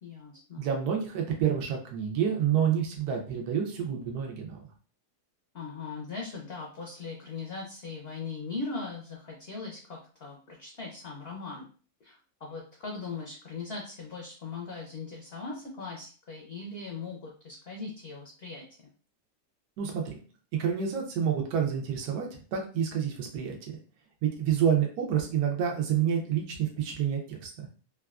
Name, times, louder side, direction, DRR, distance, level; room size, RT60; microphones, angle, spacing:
voice 1, 0.0-0.7 5.5-11.7 12.0-18.9, left 4 dB, 60° left, -1 dB, 0.6 m, -39 dB
voice 2, 0.6-4.6 19.8-20.2 20.5-23.6 24.2-27.7, right 8 dB, 75° right, 1 dB, 1.2 m, -28 dB
3.5 x 2.3 x 2.3 m, 0.39 s
omnidirectional pair, 1.7 m